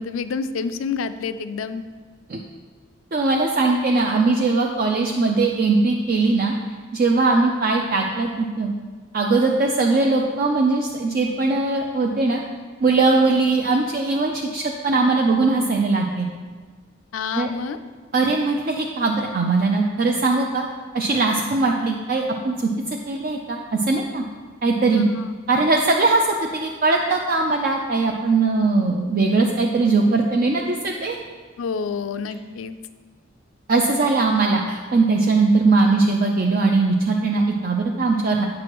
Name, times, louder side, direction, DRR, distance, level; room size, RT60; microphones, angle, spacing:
voice 1, 0.0-1.8 17.1-17.8 24.9-25.3 31.6-32.8, left 5 dB, 85° left, 12 dB, 0.4 m, -28 dB
voice 2, 3.1-6.5 6.9-8.7 9.1-12.4 12.8-16.3 17.3-17.5 18.1-20.6 20.9-22.7 23.1-24.2 24.6-25.0 25.5-26.3 26.5-31.2 33.7-38.5, right 3 dB, 45° right, 1 dB, 0.4 m, -20 dB
8.6 x 6.1 x 3.0 m, 1.5 s
head